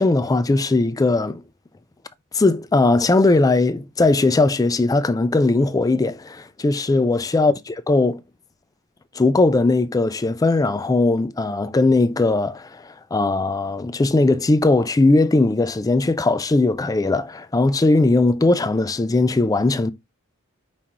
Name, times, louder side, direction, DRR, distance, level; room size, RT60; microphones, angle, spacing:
voice 1, 0.0-1.4 2.3-8.2 9.1-19.9, left 2 dB, 15° left, 0.3 m, -19 dB
5.0 x 3.6 x 2.8 m
head